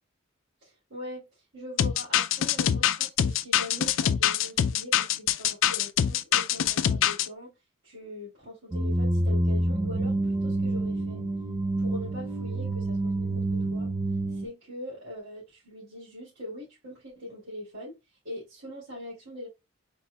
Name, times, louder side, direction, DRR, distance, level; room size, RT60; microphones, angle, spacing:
voice 1, 0.6-7.5 7.8-11.2 11.8-13.9 14.3-18.0 18.2-19.5, left 1 dB, 60° right, 2.6 m, -42 dB
sound 1, 1.8-7.3, left 9 dB, 70° left, 0.4 m, -24 dB
sound 2, 8.7-14.5, right 1 dB, 15° right, 0.4 m, -27 dB
4.3 x 4.2 x 2.3 m
head